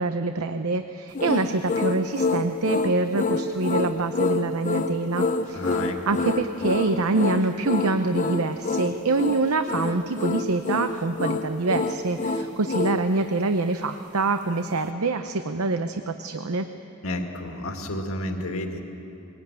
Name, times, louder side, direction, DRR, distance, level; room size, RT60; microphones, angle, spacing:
voice 1, 0.0-16.7, right 3 dB, 90° right, 8 dB, 0.8 m, -25 dB
sound 1, 1.1-13.0, left 3 dB, 35° left, 0.7 m, -27 dB
voice 2, 5.5-6.1 17.0-18.8, left 1 dB, 75° left, 4 dB, 2.0 m, -31 dB
21.5 x 18.5 x 9.0 m, 3.0 s
head